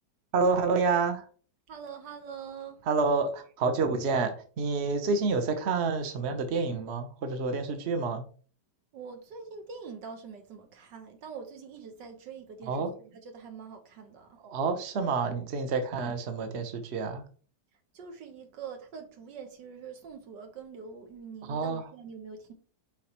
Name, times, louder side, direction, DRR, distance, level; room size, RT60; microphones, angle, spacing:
voice 1, 0.3-1.2 2.9-8.2 12.7-12.9 14.4-17.2 21.5-21.9, right 4 dB, 45° right, 1.1 m, -28 dB
voice 2, 1.7-2.8 8.9-14.4 17.9-22.5, right 6 dB, 85° right, 1.8 m, -44 dB
7.4 x 4.7 x 3.0 m
omnidirectional pair, 1.8 m